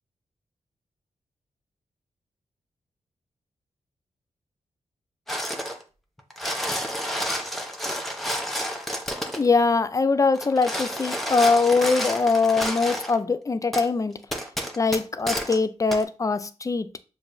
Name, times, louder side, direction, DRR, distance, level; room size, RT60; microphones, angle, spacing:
sound 1, 5.3-5.8 6.2-9.5 10.3-13.2 13.7-13.9 14.3-15.6 15.9-16.0, equal, ahead, 0.9 m, -30 dB
voice 1, 9.3-14.2 14.8-16.9, left 4 dB, 25° left, 0.4 m, -22 dB
6.7 x 2.5 x 2.6 m
cardioid pair, 70°, 13 cm